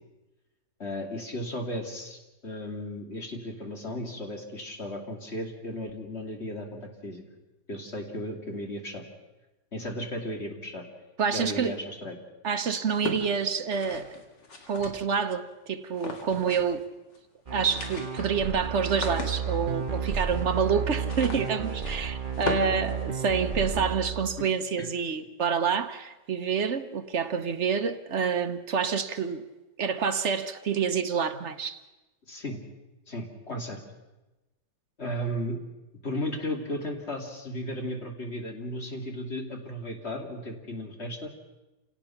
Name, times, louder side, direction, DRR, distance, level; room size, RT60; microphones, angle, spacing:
voice 1, 0.8-7.2 7.7-9.0 9.7-10.8 11.3-12.2 24.8-24.9 32.3-32.6 33.1-33.8 35.0-35.6 36.0-41.3, left 1 dB, 35° left, 3.1 m, -35 dB
voice 2, 11.2-11.8 12.4-14.2 14.7-16.8 17.5-29.4 29.8-31.8, right 6 dB, 50° right, 1.1 m, -28 dB
sound 1, 12.8-15.3 15.9-16.8 17.1-17.2 17.5-23.6, left 3 dB, 75° left, 2.8 m, -38 dB
sound 2, 17.5-24.4, right 6 dB, 30° right, 1.3 m, -32 dB
28.0 x 17.5 x 5.9 m
omnidirectional pair, 1.9 m